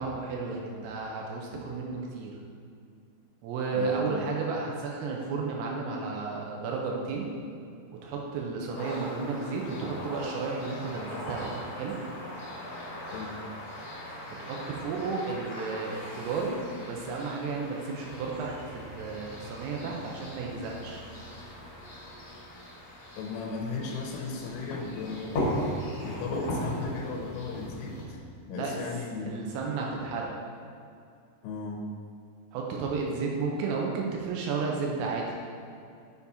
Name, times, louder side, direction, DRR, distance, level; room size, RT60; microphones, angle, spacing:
voice 1, 0.0-2.4 3.4-7.3 8.0-12.0 14.3-21.0 28.5-28.8 29.2-30.3 32.5-35.3, right 4 dB, 85° right, -1 dB, 3.5 m, -33 dB
voice 2, 3.7-4.0 13.1-13.4 23.2-25.6 26.0-28.2 28.5-29.4 31.4-31.9, left 4 dB, 80° left, 0 dB, 3.0 m, -36 dB
sound 1, 8.7-28.0, left 1 dB, 50° left, 2.2 m, -38 dB
sound 2, 18.0-28.3, right 1 dB, 55° right, 2.0 m, -52 dB
7.2 x 7.0 x 4.1 m, 2.4 s
omnidirectional pair, 5.9 m